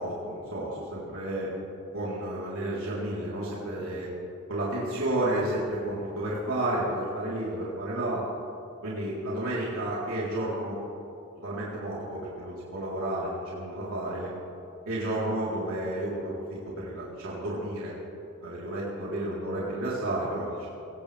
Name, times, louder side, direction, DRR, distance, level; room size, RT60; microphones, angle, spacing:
voice 1, 0.0-1.5 1.9-4.1 4.5-8.2 8.8-10.8 11.4-14.3 14.8-17.9 18.4-20.7, right 1 dB, 85° right, -7 dB, 3.8 m, -31 dB
22.5 x 18.5 x 3.5 m, 2.8 s
head